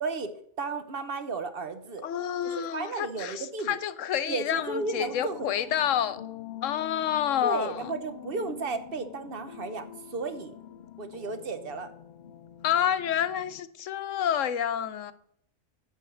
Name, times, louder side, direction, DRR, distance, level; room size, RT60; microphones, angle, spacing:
voice 1, 0.6-2.0 2.4-3.8 4.3-5.5 7.4-10.5 11.0-11.9, right 4 dB, 50° right, 1.1 m, -34 dB
voice 2, 2.0-6.2 6.6-7.9 12.6-15.1, left 9 dB, 85° left, 1.1 m, -29 dB
sound 1, 4.5-13.6, left 10 dB, 50° left, 0.6 m, -45 dB
10.5 x 4.7 x 7.7 m
omnidirectional pair, 1.3 m